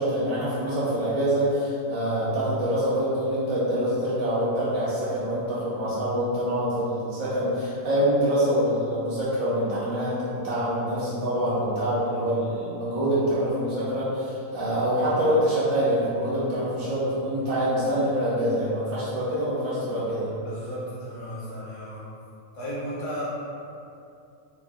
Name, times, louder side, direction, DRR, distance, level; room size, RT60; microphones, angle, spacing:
voice 1, 0.0-20.3, equal, 85° right, -9 dB, 1.5 m, -25 dB
voice 2, 20.4-22.1 22.5-23.2, equal, 65° left, -8 dB, 1.2 m, -35 dB
3.4 x 2.2 x 3.6 m, 2.6 s
omnidirectional pair, 1.4 m